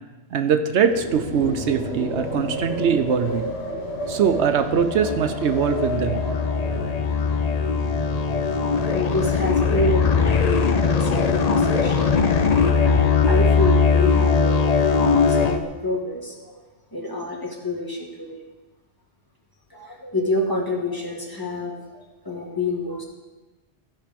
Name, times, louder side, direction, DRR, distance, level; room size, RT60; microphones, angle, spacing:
voice 1, 0.3-3.5 4.1-6.2, right 7 dB, 80° right, 8 dB, 1.0 m, -22 dB
sound 1, 0.9-11.9, left 1 dB, 65° left, 2.1 m, -32 dB
sound 2, 4.2-15.6, left 5 dB, 40° left, 0.7 m, -20 dB
voice 2, 8.9-12.1 12.8-16.6 16.9-18.4 19.7-23.0, left 1 dB, 20° left, -2 dB, 1.8 m, -28 dB
15.0 x 5.5 x 5.2 m, 1.1 s
omnidirectional pair, 1.2 m